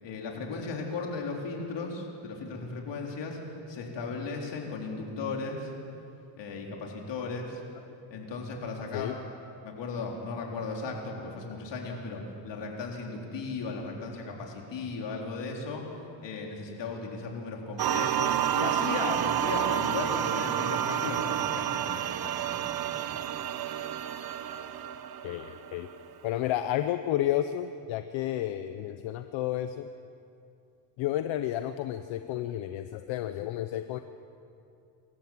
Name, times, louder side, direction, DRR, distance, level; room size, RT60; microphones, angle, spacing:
voice 1, 0.0-3.4 3.7-5.7 6.4-7.6 8.1-9.2 9.6-15.8 16.2-23.2, left 4 dB, 70° left, 0 dB, 4.1 m, -36 dB
sound 1, 17.8-26.1, right 10 dB, 55° right, 0.9 m, -30 dB
voice 2, 25.2-25.9 26.2-29.9 31.0-34.0, left 12 dB, 90° left, 9 dB, 0.8 m, -31 dB
26.0 x 14.0 x 7.5 m, 2.6 s
cardioid pair, 95°, 45 cm